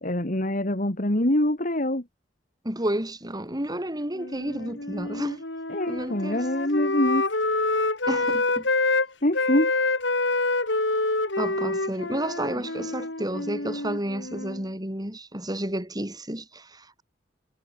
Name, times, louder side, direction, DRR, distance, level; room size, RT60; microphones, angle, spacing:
voice 1, 0.0-2.0 5.7-7.2 9.2-9.9, left 1 dB, 45° left, 3.0 m, -25 dB
voice 2, 2.6-5.4 5.9-6.5 8.1-8.7 11.4-17.0, right 1 dB, 20° right, 5.8 m, -31 dB
Wind instrument woodwind instrument, 4.1-9.1 9.3-14.6, left 2 dB, 75° left, 4.6 m, -27 dB
head